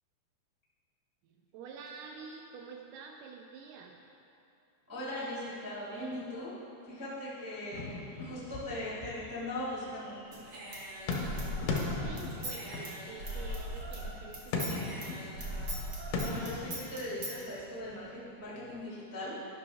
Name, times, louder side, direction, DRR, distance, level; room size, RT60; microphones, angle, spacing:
voice 1, 1.2-4.0 11.7-14.9, right 5 dB, 90° right, 2 dB, 1.8 m, -48 dB
voice 2, 4.9-6.5 6.8-7.9 8.2-10.2 16.1-19.4, left 1 dB, 25° right, -9 dB, 0.3 m, -39 dB
sound 1, 7.7-18.1 18.6-18.8, left 3 dB, 85° left, 3.0 m, -39 dB
Human voice / Scissors, 10.3-14.1 14.3-17.4, right 1 dB, 75° right, 0.9 m, -39 dB
12.0 x 5.9 x 3.4 m, 2.7 s
omnidirectional pair, 4.3 m